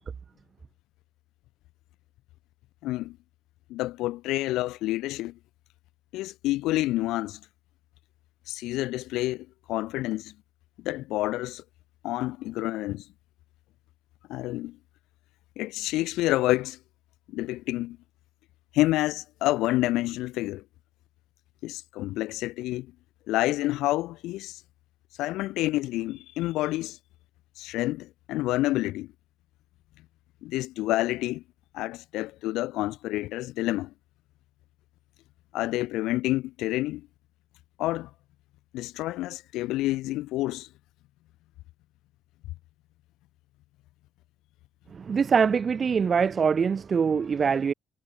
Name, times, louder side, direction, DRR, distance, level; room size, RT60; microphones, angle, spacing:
voice 1, 2.8-3.2 3.7-5.3 6.1-7.4 8.5-10.3 10.8-11.6 12.0-13.1 14.3-14.8 15.6-16.8 17.3-18.0 18.7-20.6 21.6-22.9 23.3-24.6 25.2-27.0 27.6-29.1 30.4-31.4 31.7-33.9 35.5-37.1 37.8-38.1 38.7-40.7, left 17 dB, 90° left, 0.7 m, -28 dB
voice 2, 44.9-47.7, right 6 dB, 35° right, 0.6 m, -23 dB
cardioid pair, 110°, 0 cm